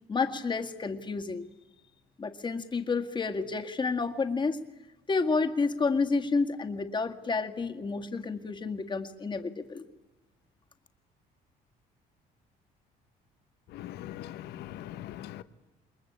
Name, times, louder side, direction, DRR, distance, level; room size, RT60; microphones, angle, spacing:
voice 1, 0.1-1.5 2.2-4.6 5.1-9.8, left 4 dB, 25° left, 2.0 m, -30 dB
voice 2, 13.7-15.4, left 13 dB, 80° left, 1.1 m, -41 dB
28.5 x 22.0 x 8.7 m
cardioid pair, 110°, 17 cm